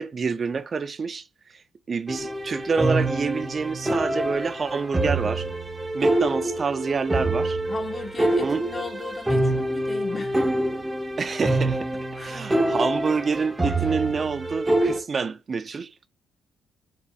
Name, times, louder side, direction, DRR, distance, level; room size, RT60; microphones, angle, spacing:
voice 1, 0.0-5.5 5.9-7.6 8.4-8.6 11.2-16.1, right 5 dB, 40° right, 0.3 m, -27 dB
sound 1, 2.1-15.0, right 1 dB, 15° right, 0.7 m, -26 dB
voice 2, 7.7-10.4 11.9-12.5, left 4 dB, 30° left, 1.0 m, -37 dB
4.7 x 3.4 x 2.3 m
cardioid pair, 90°, 0 cm